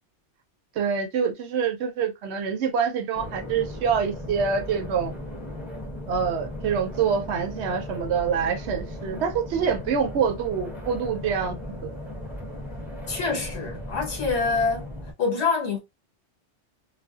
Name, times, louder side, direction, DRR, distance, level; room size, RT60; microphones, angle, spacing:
voice 1, 0.8-5.1 6.1-11.5 11.8-11.9, right 6 dB, 70° right, 0.8 m, -26 dB
sound 1, 3.1-15.1, left 1 dB, ahead, 0.7 m, -37 dB
voice 2, 13.1-14.9 15.2-15.8, left 4 dB, 65° left, 1.3 m, -25 dB
2.5 x 2.2 x 2.3 m
omnidirectional pair, 1.2 m